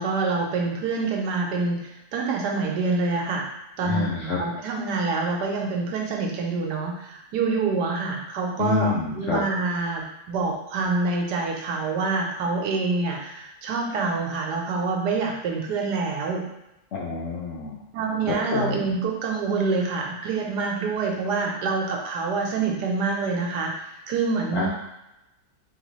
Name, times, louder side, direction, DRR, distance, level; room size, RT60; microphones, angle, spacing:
voice 1, 0.0-3.4 3.8-16.4 17.9-24.7, right 4 dB, 75° right, 1 dB, 1.3 m, -26 dB
voice 2, 3.8-4.4 8.6-9.4 16.9-17.9 18.3-18.9 24.5-24.7, left 5 dB, 65° left, -4 dB, 0.7 m, -27 dB
4.1 x 3.2 x 3.1 m, 0.91 s
omnidirectional pair, 1.8 m